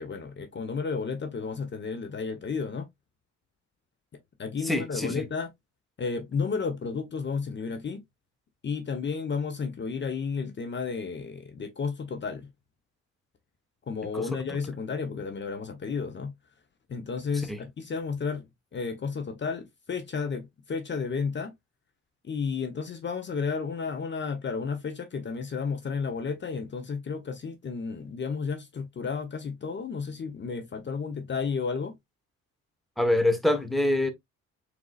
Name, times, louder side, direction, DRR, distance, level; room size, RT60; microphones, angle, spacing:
voice 1, 0.0-2.9 4.4-5.5 6.0-8.0 8.6-12.5 13.9-16.3 16.9-21.5 22.2-32.0, left 5 dB, 40° left, 0.9 m, -32 dB
voice 2, 4.6-5.2 14.1-14.3 17.5-17.6 33.0-34.1, left 1 dB, ahead, 1.2 m, -25 dB
4.5 x 4.1 x 2.3 m
cardioid pair, 90°, 30 cm